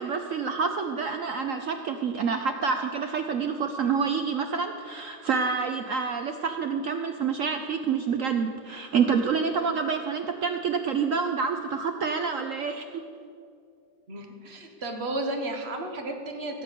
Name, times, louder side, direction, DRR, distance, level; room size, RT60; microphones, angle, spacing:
voice 1, 0.0-13.0, right 5 dB, 70° right, 6 dB, 0.8 m, -28 dB
voice 2, 14.1-16.6, right 1 dB, 35° right, 3 dB, 1.5 m, -33 dB
16.5 x 7.4 x 6.8 m, 2.4 s
omnidirectional pair, 2.0 m